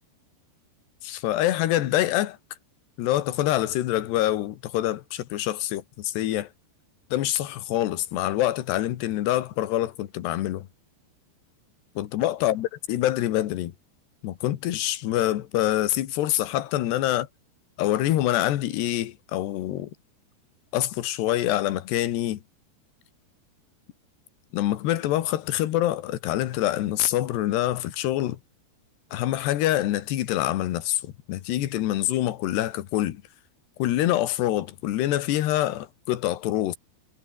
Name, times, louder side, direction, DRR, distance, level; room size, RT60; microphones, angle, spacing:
voice 1, 1.0-2.4 3.0-6.5 7.1-10.7 12.0-13.7 14.2-17.3 17.8-19.9 20.7-22.4 24.5-28.4 29.1-33.2 33.8-36.8, left 14 dB, 75° left, 3.5 m, -25 dB
omnidirectional pair, 4.9 m